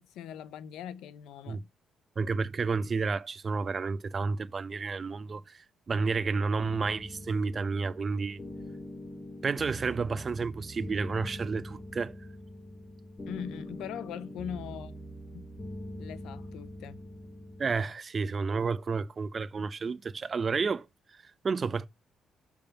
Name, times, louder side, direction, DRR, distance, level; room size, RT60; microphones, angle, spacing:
voice 1, 0.0-1.7 13.3-15.0 15.3-15.5 16.0-17.0, left 9 dB, 85° left, 0.6 m, -41 dB
voice 2, 2.2-8.4 9.4-12.2 17.6-20.9 21.1-21.9, right 4 dB, 40° right, 0.6 m, -31 dB
sound 1, 6.6-17.8, equal, 30° left, 1.7 m, -43 dB
6.8 x 3.5 x 5.7 m
cardioid pair, 90°, 0 cm